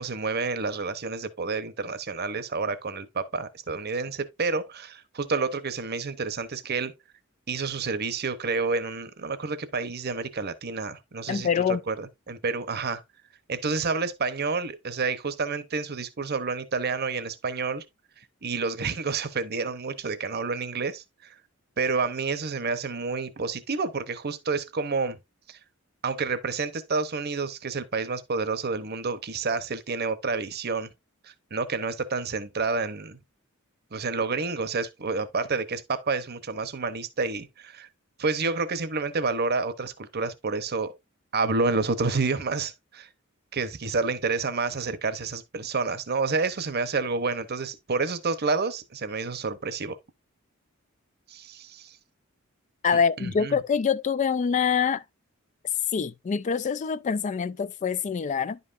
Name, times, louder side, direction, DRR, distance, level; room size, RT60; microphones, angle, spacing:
voice 1, 0.0-6.9 7.5-11.5 11.9-13.0 13.5-17.8 18.4-21.0 21.8-25.2 25.5-25.6 26.0-30.9 31.2-33.2 33.9-37.9 38.2-40.9 41.3-43.1 43.5-50.0 51.3-52.0 53.2-53.6, right 4 dB, 50° right, 0.9 m, -29 dB
voice 2, 11.3-11.8 52.8-55.0 55.9-58.6, left 6 dB, 35° left, 0.3 m, -25 dB
10.5 x 5.5 x 2.5 m
head